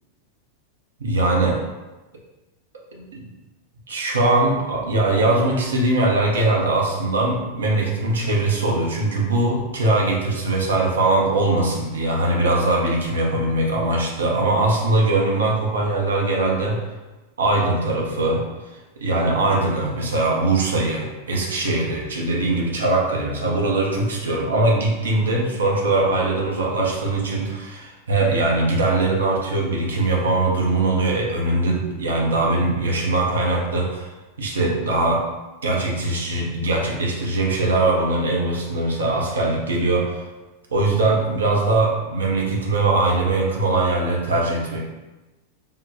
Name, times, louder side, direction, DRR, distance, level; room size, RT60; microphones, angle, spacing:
voice 1, 1.0-1.6 2.9-3.2 3.9-16.8 17.4-18.4 19.0-34.1 34.4-35.2 35.6-40.2 40.7-44.8, right 2 dB, 70° right, -1 dB, 0.6 m, -21 dB
3.6 x 2.2 x 2.7 m, 1.1 s
figure-of-eight pair, 90°, 0 cm